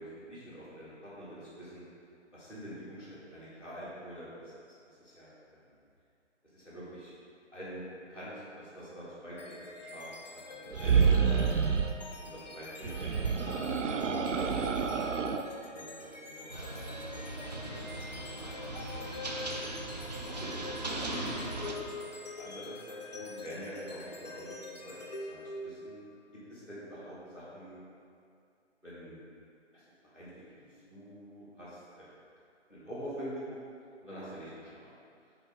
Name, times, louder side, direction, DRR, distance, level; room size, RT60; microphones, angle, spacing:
voice 1, 0.0-1.8 2.3-4.5 5.0-5.7 6.4-7.1 7.5-7.8 8.1-10.1 10.3-11.6 12.2-13.7 15.4-18.6 18.9-19.0 20.2-22.8 23.1-26.1 26.5-27.8 28.8-29.2 29.7-29.8 30.1-30.3 30.6-32.1 32.7-33.3 34.0-34.9, equal, 5° right, -15 dB, 1.4 m, -46 dB
sound 1, 9.4-26.0, left 2 dB, 35° left, 0.5 m, -45 dB
sound 2, 10.7-12.0 12.8-15.5, right 6 dB, 80° right, 0.5 m, -28 dB
sound 3, 16.5-21.7, right 2 dB, 35° right, 0.5 m, -39 dB
8.0 x 3.5 x 3.7 m, 2.4 s
figure-of-eight pair, 140°, 37 cm